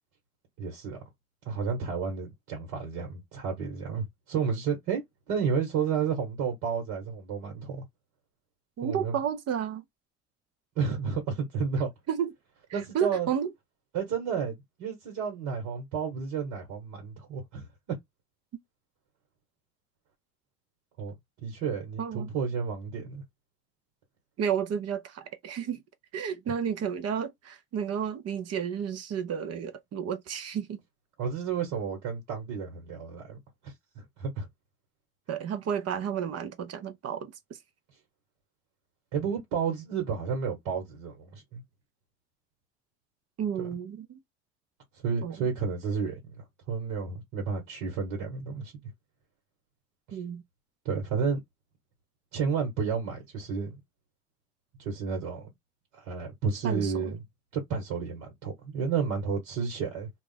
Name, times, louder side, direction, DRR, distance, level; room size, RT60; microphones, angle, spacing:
voice 1, 0.6-1.0 1.4-7.8 8.8-9.2 10.7-11.9 12.7-13.3 13.9-18.0 21.0-21.2 21.4-23.2 31.2-33.4 33.6-34.5 39.1-41.6 43.6-43.7 45.0-46.2 46.7-48.8 50.1-50.2 50.8-51.4 52.3-53.8 54.8-55.5 55.9-57.2 57.5-60.1, right 6 dB, 70° right, 1.5 m, -31 dB
voice 2, 8.8-9.8 12.1-12.3 12.7-13.5 22.0-22.3 24.4-25.8 26.1-30.8 35.3-37.3 43.4-44.2 45.2-45.5 50.1-50.4 56.6-57.1, right 8 dB, 50° right, 0.8 m, -32 dB
2.5 x 2.4 x 3.9 m
hypercardioid pair, 60°, 33 cm